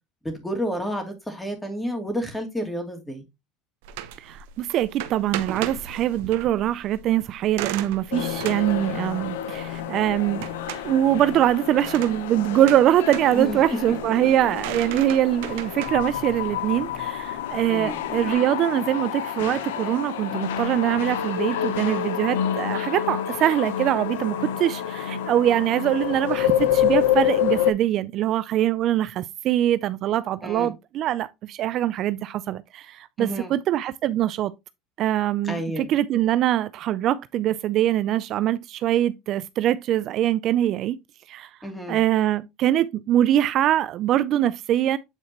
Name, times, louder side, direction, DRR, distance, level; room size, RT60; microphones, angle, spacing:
voice 1, 0.2-3.2 13.3-13.6 17.7-18.0 30.4-30.7 33.2-33.5 35.4-35.9 41.6-42.0, equal, 5° left, 2.7 m, -30 dB
sound 1, 3.8-18.3, right 10 dB, 80° right, 0.8 m, -38 dB
voice 2, 4.2-10.5 10.8-34.5 35.0-41.0 41.3-41.5 41.9-45.0, right 12 dB, 50° right, 0.4 m, -23 dB
sound 2, 8.1-27.7, left 10 dB, 90° left, 0.8 m, -28 dB
8.7 x 4.4 x 2.9 m
supercardioid pair, 105°, 0 cm